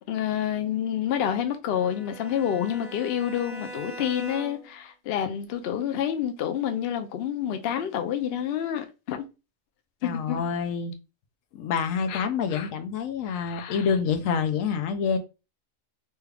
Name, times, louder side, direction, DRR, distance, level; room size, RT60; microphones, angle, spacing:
voice 1, 0.1-9.2 10.0-10.4 12.1-12.7 13.3-13.9, left 9 dB, 60° left, 0.7 m, -28 dB
Bowed string instrument, 1.7-4.8, right 1 dB, 15° right, 0.6 m, -41 dB
voice 2, 10.0-10.9 11.5-15.2, left 6 dB, 80° left, 1.0 m, -27 dB
3.2 x 2.3 x 3.3 m
omnidirectional pair, 1.4 m